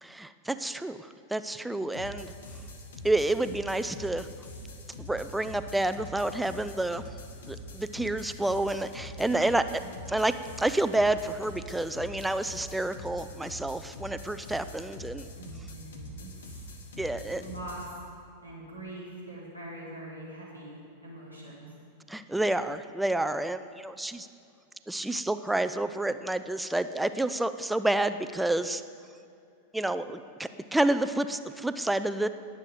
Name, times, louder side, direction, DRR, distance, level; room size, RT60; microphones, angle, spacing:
voice 1, 0.0-2.3 3.0-4.3 5.0-7.0 7.5-9.8 10.1-15.3 17.0-17.4 22.1-24.3 24.9-28.8 29.7-32.3, right 2 dB, 5° right, 11 dB, 0.5 m, -29 dB
sound 1, 1.9-17.9, left 1 dB, 65° left, 1.4 m, -44 dB
voice 2, 9.3-9.9 15.3-16.6 17.2-18.0 18.4-21.7, right 1 dB, 85° left, -5 dB, 3.7 m, -43 dB
20.0 x 7.7 x 5.0 m, 2.6 s
figure-of-eight pair, 90°, 0 cm